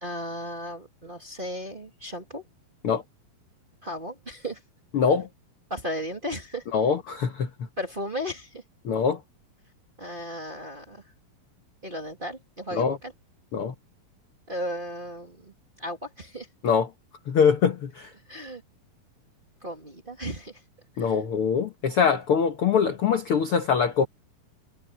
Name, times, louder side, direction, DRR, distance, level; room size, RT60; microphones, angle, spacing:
voice 1, 0.0-2.4 3.8-4.6 5.7-6.6 7.8-8.6 10.0-11.0 11.8-13.1 14.5-16.5 18.3-18.6 19.6-20.6 21.0-21.1, equal, 20° right, 1.8 m, -35 dB
voice 2, 4.9-5.3 6.7-7.5 8.8-9.2 12.7-13.0 13.5-13.7 16.6-16.9 17.3-18.1 21.0-24.1, left 6 dB, 60° left, 1.5 m, -23 dB
omnidirectional pair, 4.1 m